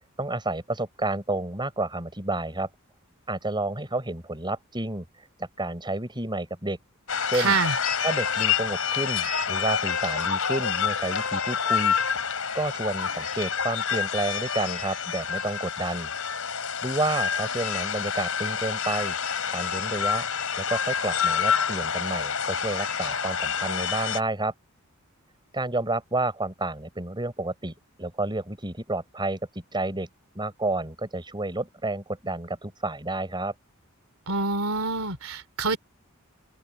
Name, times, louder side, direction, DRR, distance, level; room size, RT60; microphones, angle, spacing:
voice 1, 0.2-2.7 3.3-5.1 5.4-6.8 7.3-7.6 8.0-12.0 12.5-16.1 16.5-19.2 19.5-20.3 20.6-24.5 25.5-29.4 29.7-30.1 30.3-33.5, right 2 dB, 20° right, 5.7 m, -30 dB
sound 1, 7.1-24.2, left 7 dB, 75° left, 4.4 m, -28 dB
voice 2, 7.3-7.7 34.3-35.8, right 4 dB, 75° right, 3.3 m, -26 dB
open air
head